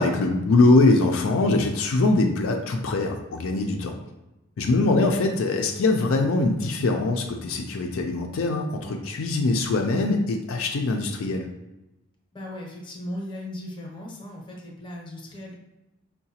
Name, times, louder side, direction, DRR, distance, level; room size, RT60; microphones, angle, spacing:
voice 1, 0.0-4.0 4.6-11.5, left 2 dB, 75° left, 3 dB, 0.4 m, -22 dB
voice 2, 12.3-15.6, left 1 dB, 25° left, -1 dB, 0.7 m, -37 dB
4.7 x 2.1 x 2.7 m, 0.97 s
head